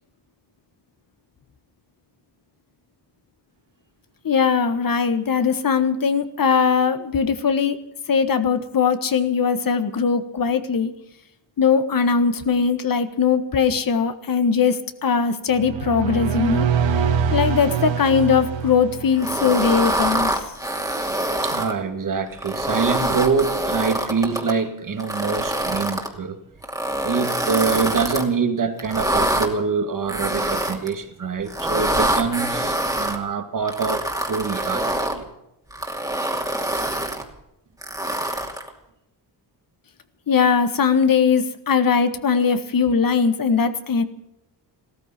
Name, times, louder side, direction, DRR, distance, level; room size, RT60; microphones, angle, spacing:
voice 1, 4.2-7.8 8.1-10.9 11.6-16.7 17.3-20.4 40.3-44.0, left 6 dB, 50° left, 1.5 m, -20 dB
sound 1, 15.5-19.4, right 7 dB, 80° right, 1.8 m, -24 dB
sound 2, 19.2-21.7 22.3-24.5 25.0-26.1 26.6-28.3 28.8-29.5 30.1-30.9 31.5-33.2 33.7-35.2 35.7-37.2 37.8-38.7, right 1 dB, 10° right, 2.6 m, -25 dB
voice 2, 21.4-26.4 27.0-35.2, right 5 dB, 45° right, 2.2 m, -25 dB
16.0 x 14.0 x 6.0 m
cardioid pair, 110°, 44 cm